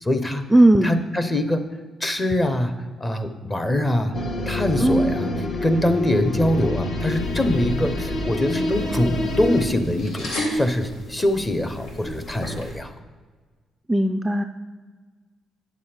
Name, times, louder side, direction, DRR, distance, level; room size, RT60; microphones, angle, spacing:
voice 1, 0.0-0.4 0.8-1.6 2.0-4.2 4.5-12.9, left 1 dB, 20° left, 8 dB, 0.8 m, -23 dB
voice 2, 0.5-1.0 4.8-5.2 13.9-14.4, right 1 dB, 15° right, 7 dB, 0.3 m, -17 dB
sound 1, 4.1-9.7, left 2 dB, 55° left, 1.1 m, -27 dB
sound 2, 7.0-12.7, left 1 dB, 90° left, 2.0 m, -33 dB
9.3 x 7.2 x 4.4 m, 1.4 s
cardioid pair, 115°, 0 cm